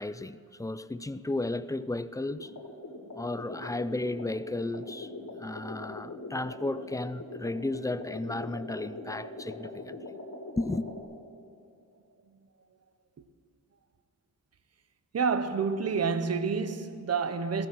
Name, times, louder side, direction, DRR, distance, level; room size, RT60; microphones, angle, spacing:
voice 1, 0.0-2.5 3.1-5.1 5.4-10.0 10.6-10.9, left 2 dB, 10° left, 0.4 m, -34 dB
sound 1, 2.3-11.0, left 2 dB, 55° left, 3.2 m, -42 dB
voice 2, 15.1-17.7, right 5 dB, 45° right, 0.9 m, -29 dB
16.5 x 14.5 x 6.1 m
wide cardioid pair, 115°, 35 cm